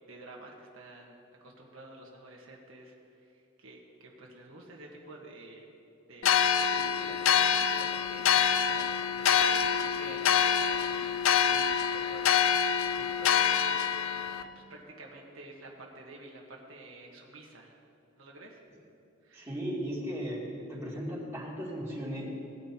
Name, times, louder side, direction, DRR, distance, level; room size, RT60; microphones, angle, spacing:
voice 1, 0.1-5.6 6.1-13.9 14.5-15.7 15.9-17.8 18.2-18.6 19.2-19.5, right 2 dB, 85° right, -1 dB, 1.3 m, -50 dB
sound 1, 6.2-14.4, left 8 dB, 80° left, 0.4 m, -26 dB
voice 2, 19.3-20.4 20.7-22.2, equal, 15° right, -7 dB, 2.7 m, -36 dB
18.0 x 9.4 x 2.8 m, 2.7 s
head